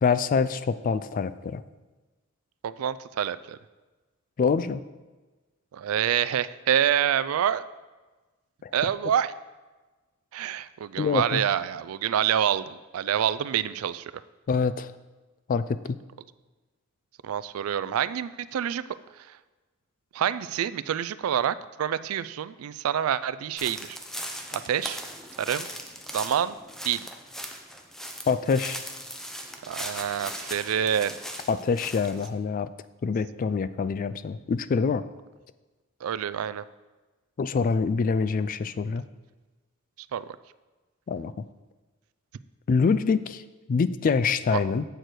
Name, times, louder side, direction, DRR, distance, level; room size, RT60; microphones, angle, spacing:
voice 1, 0.0-1.6 4.4-4.8 8.6-8.7 11.0-11.4 14.5-14.9 15.5-16.0 28.3-28.8 31.5-32.7 33.0-35.0 37.4-39.0 41.1-41.3 42.7-43.4 43.7-44.8, left 5 dB, 40° left, 14 dB, 0.3 m, -25 dB
voice 2, 2.6-3.6 5.7-7.7 8.7-9.3 10.3-14.2 17.2-18.8 19.2-19.4 20.1-24.0 24.5-25.0 25.4-25.7 26.1-26.6 26.8-27.1 29.6-31.1 36.0-36.6 40.1-40.3 44.5-44.7, right 9 dB, 75° right, 16 dB, 0.3 m, -27 dB
sound 1, 23.6-32.3, equal, ahead, 0.6 m, -39 dB
7.8 x 6.7 x 4.6 m, 1.2 s
head